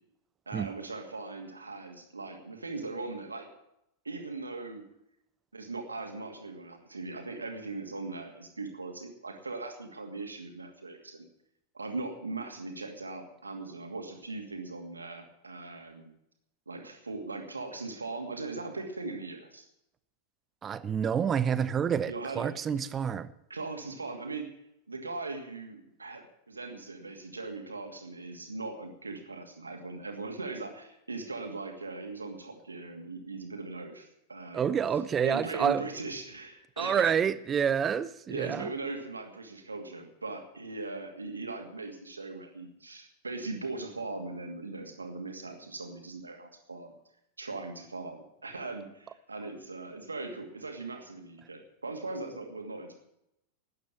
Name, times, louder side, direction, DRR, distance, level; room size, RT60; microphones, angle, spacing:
voice 1, 0.5-3.5 4.0-4.8 5.5-11.3 11.7-16.1 16.7-19.7 22.1-22.5 23.5-24.5 24.9-34.8 35.2-37.1 38.3-46.9 47.4-52.9, right 3 dB, 80° right, 2.5 m, -39 dB
voice 2, 20.6-23.3 34.5-35.8 36.8-38.7, right 7 dB, 25° right, 0.7 m, -28 dB
12.5 x 9.5 x 8.7 m
figure-of-eight pair, 90°, 0 cm